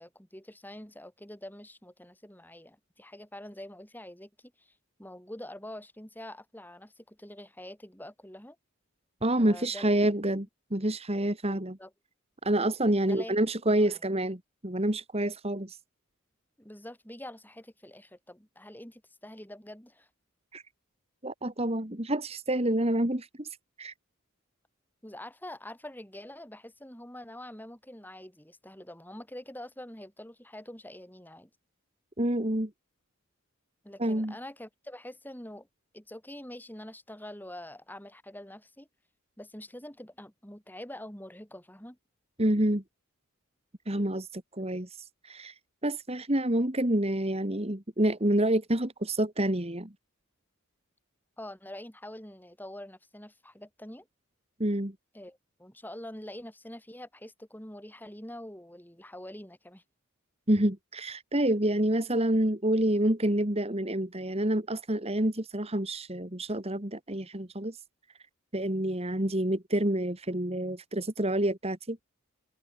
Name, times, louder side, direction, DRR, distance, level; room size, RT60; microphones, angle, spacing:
voice 1, 0.0-4.7 5.0-8.6 9.4-9.9 11.5-11.9 13.0-13.4 13.8-14.0 16.6-20.1 25.0-31.5 33.8-35.7 35.9-38.9 39.4-42.0 51.4-54.1 55.1-59.8, left 1 dB, 10° left, 5.9 m, -45 dB
voice 2, 9.2-11.8 12.4-15.8 20.5-20.6 21.2-23.5 23.8-23.9 32.2-32.7 34.0-34.3 42.4-42.8 43.9-45.5 45.8-49.9 54.6-54.9 60.5-67.8 68.5-72.0, right 1 dB, 30° right, 2.4 m, -28 dB
head